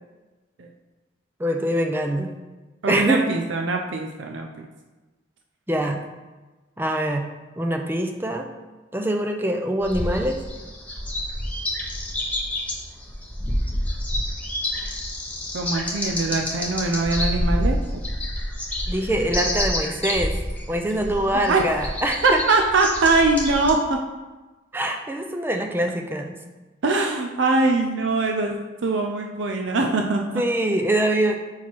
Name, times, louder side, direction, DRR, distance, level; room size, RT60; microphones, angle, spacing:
voice 1, 1.4-2.3 2.9-3.2 5.7-6.0 6.8-7.2 7.6-8.5 8.9-10.4 18.9-20.3 20.7-22.4 24.7-26.4 30.3-31.3, right 1 dB, 10° right, 3 dB, 0.5 m, -24 dB
voice 2, 2.8-4.7 15.5-17.8 21.3-21.6 22.2-24.0 26.8-30.4, right 3 dB, 75° right, 2 dB, 0.5 m, -22 dB
sound 1, 9.8-23.7, left 1 dB, 10° left, 1.0 m, -28 dB
5.6 x 4.3 x 4.6 m, 1.2 s
head